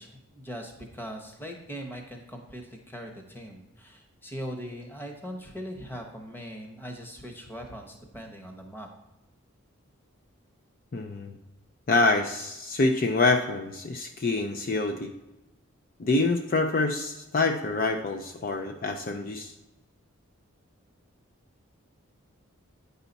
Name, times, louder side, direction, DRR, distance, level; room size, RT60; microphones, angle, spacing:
voice 1, 0.0-8.9, equal, 10° left, 3 dB, 0.9 m, -40 dB
voice 2, 10.9-11.4 11.9-15.1 16.0-19.5, left 3 dB, 40° left, 5 dB, 0.4 m, -26 dB
9.0 x 5.6 x 4.0 m, 0.95 s
head